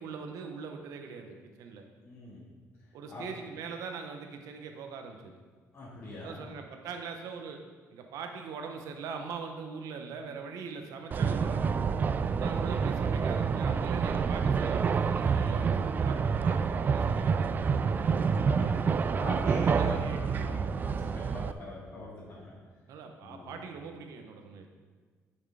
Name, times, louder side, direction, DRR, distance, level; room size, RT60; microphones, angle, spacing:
voice 1, 0.0-1.9 2.9-5.4 6.2-7.6 7.9-11.6 12.4-17.9 19.7-20.5 22.9-24.7, right 5 dB, 85° right, 4 dB, 1.1 m, -42 dB
voice 2, 2.0-2.4 3.1-3.2 5.7-6.5 12.0-12.2 18.1-18.8 19.2-22.6 23.2-23.5, left 2 dB, 40° left, -9 dB, 2.6 m, -42 dB
sound 1, 11.1-21.5, right 6 dB, 35° right, 0.3 m, -28 dB
9.1 x 6.5 x 5.0 m, 1.5 s
cardioid pair, 130°, 6 cm